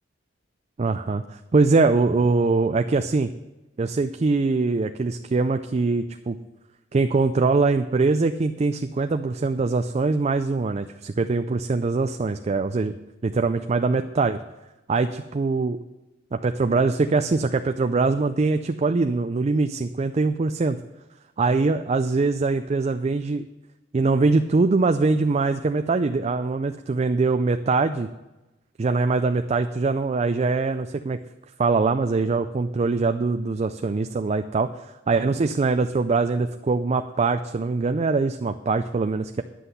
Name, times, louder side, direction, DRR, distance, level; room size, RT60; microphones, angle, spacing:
voice 1, 0.8-3.3 3.8-6.4 6.9-13.0 13.2-14.4 14.9-15.8 16.3-20.8 21.4-23.4 23.9-28.1 28.8-31.2 31.6-39.4, right 3 dB, 35° right, 8 dB, 0.4 m, -23 dB
9.9 x 7.8 x 6.8 m, 1.0 s
head